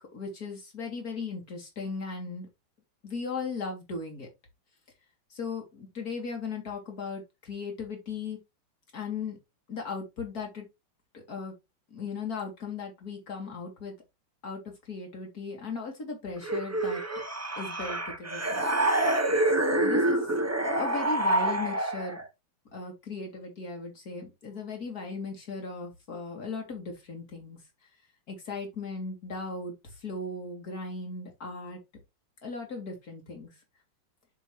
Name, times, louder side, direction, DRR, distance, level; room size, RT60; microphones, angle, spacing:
voice 1, 0.1-2.5 3.0-4.3 5.3-8.4 8.9-9.4 9.7-10.6 11.1-11.5 11.9-13.9 14.4-14.6 14.9-17.0 17.6-18.6 19.7-22.2 22.7-27.6 28.3-29.7 30.0-31.8 32.4-33.5, left 4 dB, 45° left, 3.4 m, -37 dB
sound 1, 16.4-22.3, right 1 dB, 20° right, 0.4 m, -27 dB
7.6 x 7.1 x 3.2 m
omnidirectional pair, 2.2 m